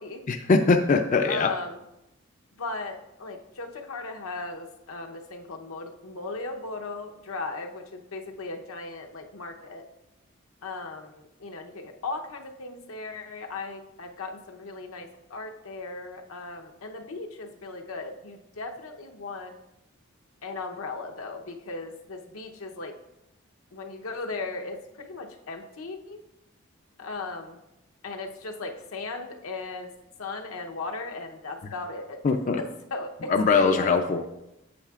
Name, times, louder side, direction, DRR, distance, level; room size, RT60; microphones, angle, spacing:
voice 1, 0.3-1.5 32.2-32.6 33.3-34.2, left 4 dB, 35° left, 5 dB, 0.3 m, -21 dB
voice 2, 1.3-1.8 2.6-9.9 10.6-19.5 20.4-23.0 23.7-26.2 27.0-27.6 28.0-29.9 30.2-32.2 32.6-34.3, left 3 dB, 85° left, 3 dB, 0.8 m, -37 dB
8.7 x 7.3 x 2.4 m, 0.90 s
head